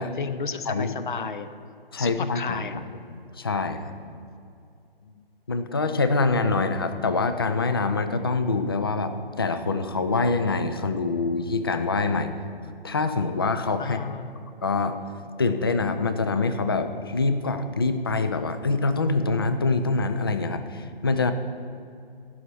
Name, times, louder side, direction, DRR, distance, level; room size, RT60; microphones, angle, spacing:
voice 1, 0.2-1.5 2.0-2.8 5.0-5.2 13.8-14.3, left 5 dB, 55° left, 11 dB, 0.8 m, -32 dB
voice 2, 1.9-2.8 3.4-4.0 5.5-12.3 12.8-14.0 14.6-15.0 15.4-21.3, left 3 dB, 25° left, 9 dB, 0.4 m, -25 dB
15.0 x 5.6 x 6.2 m, 2.4 s
figure-of-eight pair, 145°, 30 cm